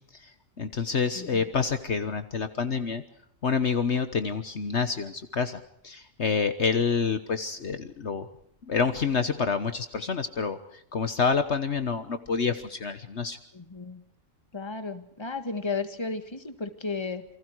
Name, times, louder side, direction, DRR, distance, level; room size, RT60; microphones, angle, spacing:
voice 1, 0.6-3.0 3.4-5.6 5.8-8.2 8.7-10.6 10.9-13.4, left 5 dB, 55° left, 10 dB, 1.5 m, -27 dB
voice 2, 1.1-1.5 13.5-14.0 14.5-17.3, left 4 dB, 20° left, 9 dB, 1.8 m, -34 dB
28.5 x 24.0 x 4.7 m, 0.68 s
omnidirectional pair, 1.4 m